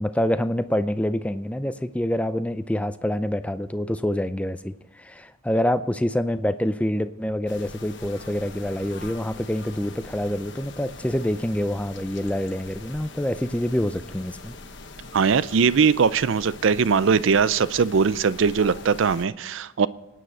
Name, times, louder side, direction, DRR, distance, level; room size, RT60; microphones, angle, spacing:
voice 1, 0.0-14.6, left 1 dB, 5° left, 0.4 m, -26 dB
sound 1, 7.5-19.2, left 3 dB, 55° left, 1.3 m, -42 dB
voice 2, 15.1-19.9, right 5 dB, 65° right, 0.4 m, -20 dB
25.0 x 9.2 x 4.3 m
head